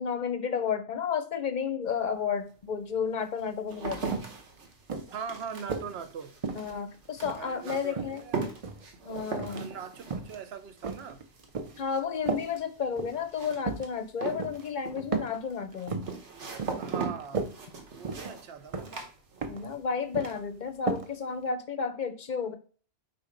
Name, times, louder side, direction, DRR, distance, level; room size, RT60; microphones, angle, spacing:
voice 1, 0.0-4.3 6.5-8.2 9.0-9.7 11.8-16.1 19.5-22.6, left 6 dB, 50° left, 0.7 m, -32 dB
sound 1, 1.9-2.0 2.7-19.8 20.1-20.7, right 5 dB, 90° right, 1.5 m, -40 dB
sound 2, 3.7-3.8 4.1-4.4 4.9-5.9 6.4-7.5 7.9-8.9 9.3-9.7 10.0-10.4 10.8-11.8 12.3-12.5 12.9-13.2 13.6-13.9 14.4-14.6 15.1-15.4 15.7-16.2 16.6-16.9 17.2-17.5 18.0-18.4 18.7-19.0 19.4-19.7 19.9-20.4 20.9-21.1 21.4-21.5, right 4 dB, 40° right, 0.6 m, -34 dB
voice 2, 5.1-6.3 7.3-8.6 9.5-11.2 16.8-17.5 17.9-19.1, right 6 dB, 65° right, 0.9 m, -41 dB
4.3 x 4.3 x 5.1 m
omnidirectional pair, 1.2 m